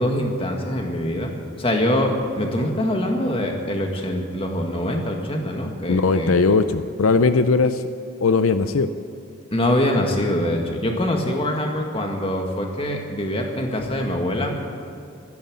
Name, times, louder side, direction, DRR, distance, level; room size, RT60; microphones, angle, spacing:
voice 1, 0.0-6.3 9.5-14.5, left 1 dB, 25° left, 2 dB, 1.8 m, -24 dB
voice 2, 5.9-7.8 8.2-8.9, left 4 dB, 80° left, 11 dB, 0.5 m, -19 dB
13.0 x 11.0 x 9.5 m, 2.5 s
head